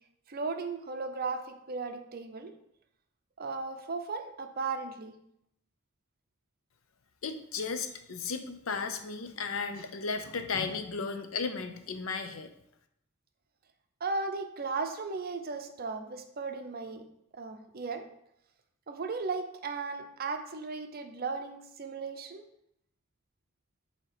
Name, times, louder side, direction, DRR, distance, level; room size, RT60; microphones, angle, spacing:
voice 1, 0.3-2.5 3.4-5.1 14.0-17.1 17.3-18.1 18.9-22.4, right 4 dB, 45° right, 6 dB, 0.6 m, -36 dB
voice 2, 7.2-12.5, left 5 dB, 90° left, 8 dB, 0.6 m, -35 dB
7.4 x 2.9 x 4.9 m, 0.76 s
head